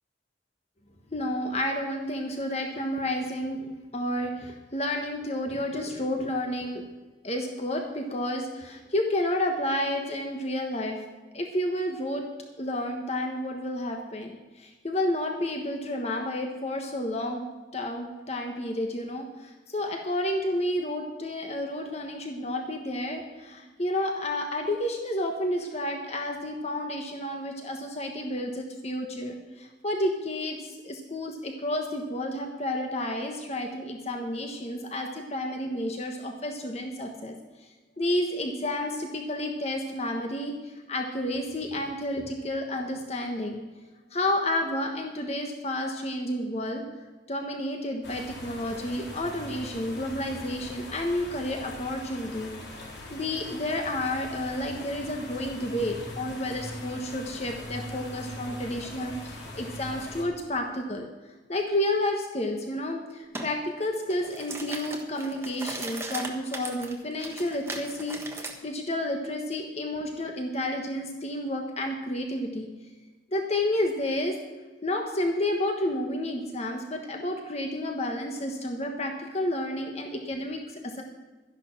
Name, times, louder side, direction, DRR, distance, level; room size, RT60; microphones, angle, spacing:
voice 1, 1.1-6.8 7.2-11.0 11.3-12.2 12.6-17.4 17.7-37.3 38.0-43.6 44.1-46.8 47.3-52.5 53.1-61.1 61.5-72.7 73.3-74.4 74.8-81.0, left 1 dB, 35° left, 3 dB, 1.3 m, -31 dB
sound 1, 48.0-60.2, left 1 dB, 75° left, 3.4 m, -41 dB
sound 2, 63.3-63.5 64.0-68.5, right 2 dB, 15° right, 1.4 m, -38 dB
12.5 x 11.0 x 6.0 m, 1.3 s
head